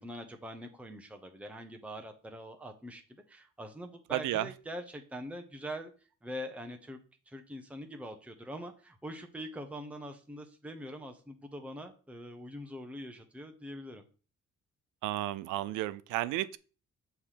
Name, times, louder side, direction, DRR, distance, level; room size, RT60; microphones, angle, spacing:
voice 1, 0.0-3.0 3.3-5.9 6.2-7.0 7.3-14.0, equal, 5° right, 0.9 m, -43 dB
voice 2, 4.1-4.5 15.0-16.6, right 15 dB, 90° right, 0.5 m, -32 dB
6.7 x 3.2 x 5.7 m
cardioid pair, 90°, 30 cm